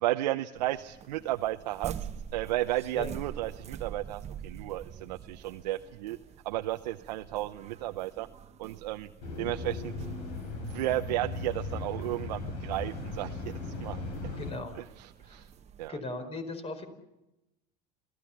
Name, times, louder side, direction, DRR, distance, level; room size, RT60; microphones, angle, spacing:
voice 1, 0.0-6.2 6.4-8.3 8.6-9.1 9.4-10.0 10.6-13.5 13.8-14.0 15.2-15.5 15.8-15.9, right 15 dB, 90° right, 7 dB, 0.7 m, -33 dB
sound 1, 0.5-15.9, right 8 dB, 30° right, 1.2 m, -46 dB
sound 2, 9.2-14.5, left 3 dB, 70° left, 7.1 m, -38 dB
voice 2, 14.4-14.8 15.2-15.5 15.9-16.9, left 3 dB, 30° left, 8 dB, 4.8 m, -38 dB
27.0 x 17.0 x 7.2 m, 0.92 s
supercardioid pair, 105°, 21 cm